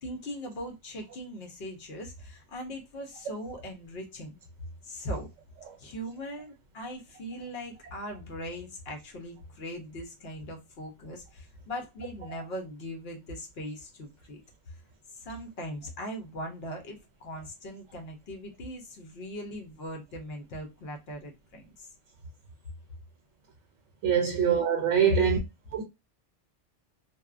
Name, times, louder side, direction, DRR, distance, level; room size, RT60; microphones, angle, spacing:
voice 1, 0.0-4.4 4.8-5.3 5.8-14.4 15.1-21.9, equal, 60° left, 1.0 m, -40 dB
voice 2, 24.0-25.4 25.7-25.8, right 8 dB, 85° right, 0.9 m, -24 dB
2.8 x 2.1 x 2.4 m
omnidirectional pair, 1.2 m